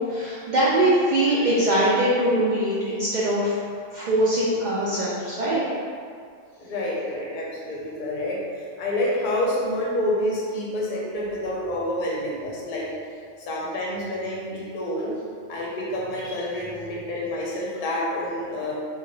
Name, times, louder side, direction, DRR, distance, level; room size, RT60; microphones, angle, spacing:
voice 1, 0.0-3.6 3.9-5.6, right 1 dB, 65° right, -7 dB, 0.4 m, -22 dB
voice 2, 6.6-12.9 13.4-15.1 15.5-18.7, left 1 dB, 50° left, -4 dB, 0.7 m, -28 dB
2.9 x 2.4 x 3.0 m, 2.2 s
omnidirectional pair, 1.3 m